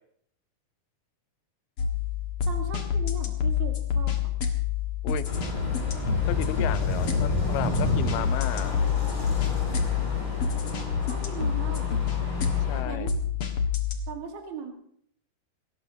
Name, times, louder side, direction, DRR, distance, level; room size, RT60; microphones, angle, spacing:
sound 1, 1.8-14.0, left 8 dB, 50° left, 1.7 m, -28 dB
voice 1, 2.4-4.3 11.1-12.3 12.8-13.1 14.1-14.7, right 6 dB, 50° right, 2 dB, 1.4 m, -39 dB
sound 2, 5.2-12.8, equal, 30° left, 5.9 m, -31 dB
voice 2, 6.2-8.8 12.6-13.1, left 13 dB, 80° left, 14 dB, 2.6 m, -33 dB
27.5 x 14.5 x 2.8 m, 0.65 s
omnidirectional pair, 4.6 m